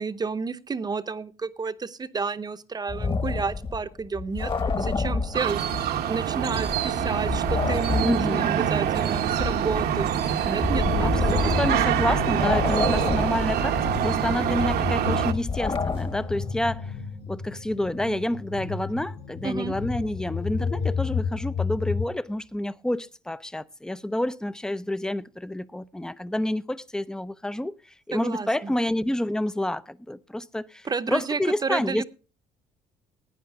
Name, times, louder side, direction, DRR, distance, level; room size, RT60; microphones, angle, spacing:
voice 1, 0.0-4.5 4.8-10.1 10.4-11.5 19.4-19.7 28.1-28.7 30.8-32.1, right 4 dB, 25° right, 0.8 m, -31 dB
sound 1, 2.9-6.0 6.3-12.0 12.3-16.4, left 4 dB, 30° left, 1.4 m, -30 dB
sound 2, 5.3-15.3, right 9 dB, 70° right, 1.1 m, -25 dB
voice 2, 8.0-8.5 11.0-17.0 17.3-32.1, left 1 dB, 5° left, 0.5 m, -29 dB
sound 3, 10.9-22.1, left 6 dB, 65° left, 3.1 m, -32 dB
17.5 x 9.4 x 3.5 m
cardioid pair, 110°, 17 cm